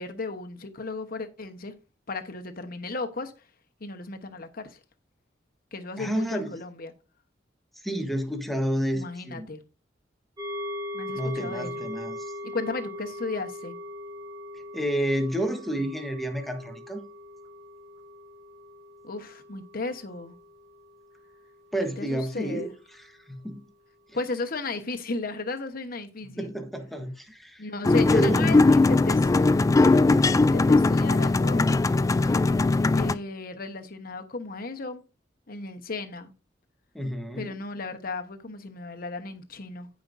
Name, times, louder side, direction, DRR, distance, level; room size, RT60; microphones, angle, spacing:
voice 1, 0.0-1.7 2.1-3.3 3.8-4.8 5.7-6.9 8.9-9.6 10.9-11.9 12.4-13.8 19.0-20.3 21.8-22.7 24.1-26.5 27.6-29.3 29.8-30.0 30.3-31.8 32.9-35.0 35.5-36.3 37.4-39.9, left 3 dB, 55° left, 1.1 m, -35 dB
voice 2, 6.0-6.5 7.8-9.5 11.1-12.2 14.7-17.0 21.7-22.7 22.9-23.6 26.4-27.7 28.1-28.6 36.9-37.5, equal, ahead, 1.1 m, -30 dB
sound 1, 10.4-22.0 22.4-22.5, left 1 dB, 20° right, 1.3 m, -40 dB
sound 2, 27.8-33.1, left 3 dB, 20° left, 0.3 m, -20 dB
15.5 x 5.2 x 2.6 m
head